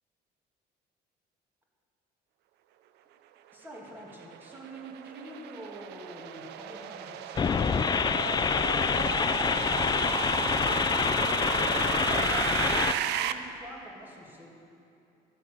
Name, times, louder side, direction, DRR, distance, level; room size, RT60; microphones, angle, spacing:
voice 1, 3.5-14.5, equal, 10° right, -2 dB, 2.4 m, -46 dB
sound 1, 3.8-13.3, right 11 dB, 80° right, 0.6 m, -34 dB
sound 2, 7.3-12.9, left 6 dB, 25° left, 0.4 m, -26 dB
12.5 x 9.1 x 7.2 m, 2.7 s
cardioid pair, 110°, 17 cm